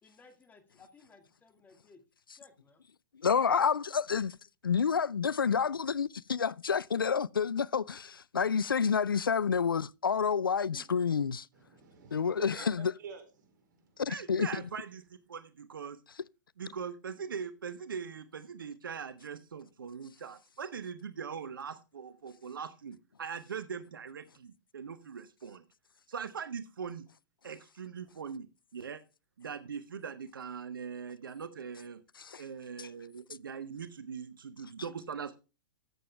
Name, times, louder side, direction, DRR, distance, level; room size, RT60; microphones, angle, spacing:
voice 1, 0.0-2.0 2.4-2.8 10.5-10.9, left 4 dB, 15° left, 2.1 m, -59 dB
voice 2, 3.2-4.4 4.6-11.5 12.1-12.9 14.0-14.6 32.2-32.4 32.8-32.9, left 6 dB, 85° left, 0.4 m, -29 dB
voice 3, 11.5-14.1, right 6 dB, 60° right, 4.0 m, -50 dB
voice 4, 14.1-15.0 15.3-16.0 16.6-25.6 26.1-27.0 27.4-28.5 28.7-29.0 29.4-32.0 32.4-35.4, right 6 dB, 75° right, 1.0 m, -41 dB
13.5 x 7.7 x 3.4 m
hypercardioid pair, 115°, 11 cm